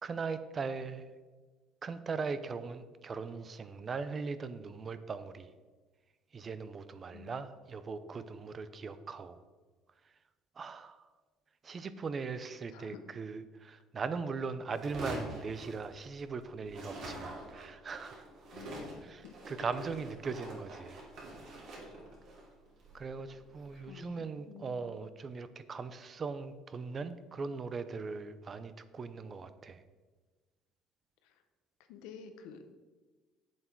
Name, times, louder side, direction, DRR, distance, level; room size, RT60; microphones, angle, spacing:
voice 1, 0.0-1.0 1.8-5.5 6.3-9.4 10.6-11.1 11.6-18.3 19.0-21.0 21.5-21.7 22.9-29.8, right 4 dB, 30° right, 12 dB, 0.5 m, -40 dB
voice 2, 12.7-13.0 18.5-19.3 19.6-19.7 23.7-25.0 31.2-31.3 31.9-32.7, left 7 dB, 90° left, 8 dB, 1.0 m, -51 dB
sound 1, 14.7-16.3 16.6-23.8, right 1 dB, 55° right, 2.7 m, -45 dB
8.1 x 7.4 x 4.5 m, 1.3 s
cardioid pair, 135°, 0 cm